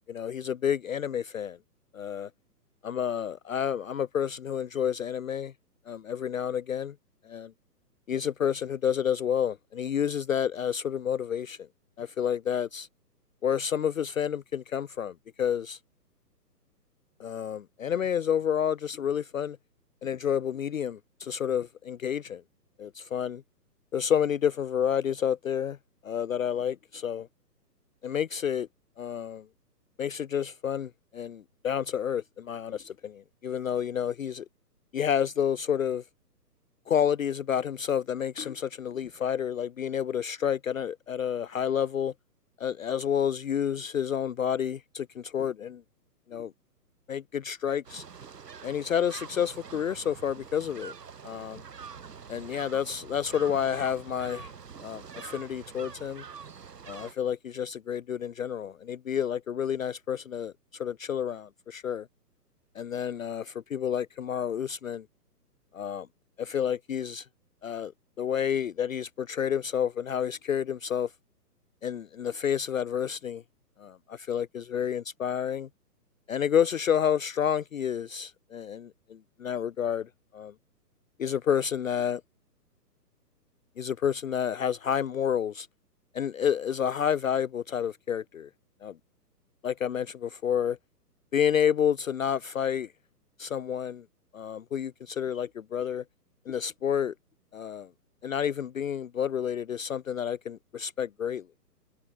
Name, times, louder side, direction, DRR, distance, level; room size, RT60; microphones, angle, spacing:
voice 1, 0.0-1.6 1.9-2.3 2.8-5.5 5.9-6.9 7.2-7.5 8.1-11.7 12.0-12.9 13.4-15.8 17.2-19.6 20.0-22.4 22.8-23.4 23.9-25.8 26.0-27.3 28.0-28.7 29.0-29.4 30.0-34.5 34.9-36.0 36.9-42.1 42.6-45.8 46.3-46.5 47.1-48.0 48.6-50.9 51.2-51.6 52.3-54.5 54.8-56.2 56.9-62.1 62.7-65.1 65.7-66.1 66.4-67.3 67.6-67.9 68.2-71.1 71.8-73.4 73.8-75.7 76.3-80.5 81.2-82.2 83.8-85.7 86.1-88.5 88.8-89.0 89.6-90.8 91.3-92.9 93.4-94.0 94.3-96.0 96.5-97.1 97.5-97.9 98.2-101.5, left 8 dB, 55° left, 0.7 m, -29 dB
sound 1, 47.8-57.1, right 6 dB, 70° right, 5.7 m, -45 dB
hypercardioid pair, 175°, 49 cm